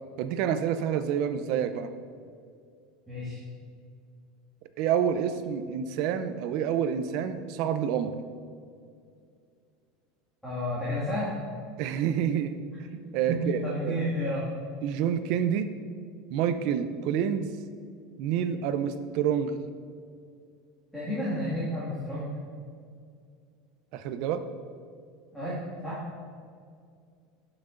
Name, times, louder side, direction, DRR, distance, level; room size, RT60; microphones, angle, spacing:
voice 1, 0.2-1.9 4.8-8.1 11.8-12.6 13.1-14.0 14.8-15.7 16.3-17.5 18.2-19.6 23.9-24.4, right 8 dB, 60° right, 11 dB, 0.5 m, -28 dB
voice 2, 3.1-3.4 10.4-11.3 13.3-14.5 20.9-22.4 25.3-26.0, equal, ahead, -11 dB, 2.0 m, -31 dB
12.0 x 5.9 x 2.5 m, 2.2 s
supercardioid pair, 145°, 0 cm